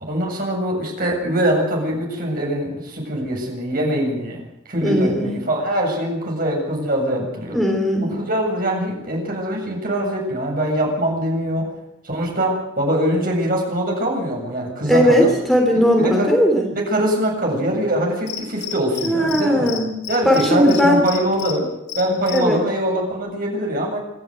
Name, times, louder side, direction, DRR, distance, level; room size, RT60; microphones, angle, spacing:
voice 1, 0.1-4.4 4.7-7.6 8.1-11.7 12.0-15.3 15.6-16.3 16.7-19.7 20.1-21.7 22.0-24.0, right 1 dB, 50° right, 0 dB, 7.8 m, -23 dB
voice 2, 4.8-5.3 7.5-8.1 14.8-16.7 19.0-19.9 20.3-21.0 22.3-22.6, equal, ahead, 0 dB, 3.5 m, -17 dB
Cricket, 18.3-19.4 19.7-19.8 20.0-21.5 21.9-22.4, left 11 dB, 65° left, 5.3 m, -30 dB
26.5 x 13.0 x 9.3 m, 0.88 s
head